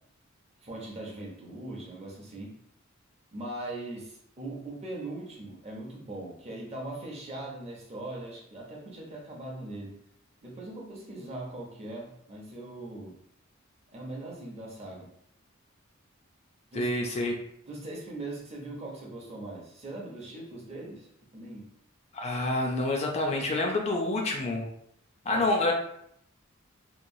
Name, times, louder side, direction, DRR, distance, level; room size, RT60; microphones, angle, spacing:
voice 1, 0.6-2.6 3.3-10.0 10.4-13.2 13.9-15.1 16.7-16.9 17.6-21.7 25.3-25.4, right 2 dB, 30° right, -3 dB, 0.7 m, -40 dB
voice 2, 16.7-17.3 22.1-24.7 25.3-25.7, left 2 dB, 30° left, 1 dB, 0.3 m, -27 dB
2.9 x 2.2 x 2.6 m, 0.71 s
head